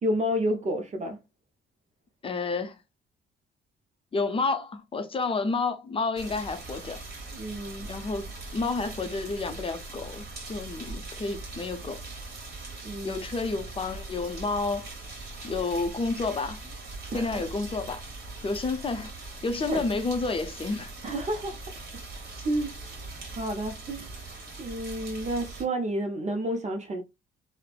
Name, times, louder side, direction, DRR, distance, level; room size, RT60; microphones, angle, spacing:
voice 1, 0.0-1.2 7.3-7.9 12.8-13.2 17.1-17.4 19.7-19.8 21.0-22.0 22.4-24.2 24.6-27.0, right 1 dB, 35° right, 0.5 m, -31 dB
voice 2, 2.2-2.8 4.1-7.0 7.8-12.0 13.0-14.9 15.4-16.6 17.1-18.0 18.4-19.1 19.4-20.9, left 3 dB, 25° left, 0.5 m, -30 dB
sound 1, 6.2-25.6, right 3 dB, 55° right, 1.3 m, -41 dB
3.1 x 2.0 x 2.3 m
cardioid pair, 90°, 20 cm